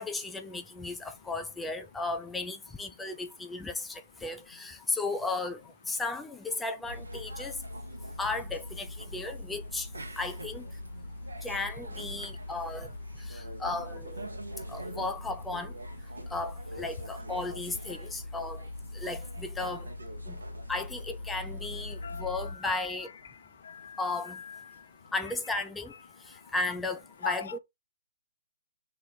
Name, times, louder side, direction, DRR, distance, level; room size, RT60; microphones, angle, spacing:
voice 1, 0.0-7.6 8.2-9.9 10.2-10.7 11.4-12.9 13.2-14.3 14.7-15.7 16.3-18.6 18.9-19.9 20.3-20.4 20.7-23.1 24.0-24.4 25.1-25.9 26.3-27.6, left 3 dB, 5° left, 0.4 m, -35 dB
sound 1, 6.9-22.5, left 1 dB, 85° right, 0.8 m, -41 dB
voice 2, 22.0-22.9 23.6-24.7 27.2-27.6, left 7 dB, 60° left, 0.5 m, -40 dB
3.0 x 2.0 x 4.0 m
figure-of-eight pair, 135°, 0 cm